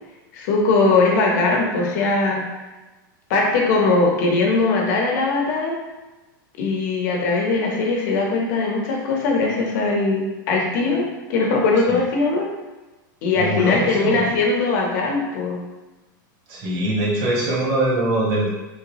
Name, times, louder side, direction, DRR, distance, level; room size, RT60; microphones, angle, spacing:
voice 1, 0.3-2.4 3.3-5.7 6.6-11.0 11.3-12.5 13.2-15.6, left 3 dB, 65° left, -1 dB, 0.9 m, -20 dB
voice 2, 13.4-14.3 16.5-18.5, right 1 dB, 55° right, -4 dB, 1.2 m, -22 dB
3.3 x 2.7 x 3.0 m, 1.1 s
supercardioid pair, 140°, 11 cm